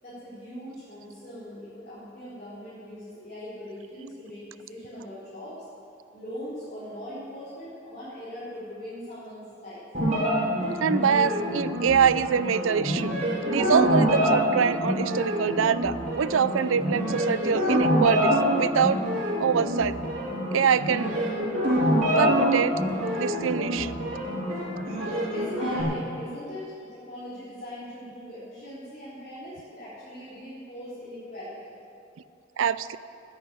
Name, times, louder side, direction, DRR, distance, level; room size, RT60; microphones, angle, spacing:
voice 1, 0.0-5.6 6.1-9.8 25.3-31.7, equal, 40° left, -12 dB, 4.3 m, -40 dB
sound 1, 9.9-25.8, equal, 40° right, 3.7 m, -26 dB
voice 2, 10.8-13.1 13.5-19.0 19.4-20.0 20.5-21.1 22.2-22.8 23.2-24.0 32.6-33.0, right 7 dB, 80° right, 16 dB, 0.4 m, -24 dB
10.5 x 9.6 x 9.1 m, 2.5 s
head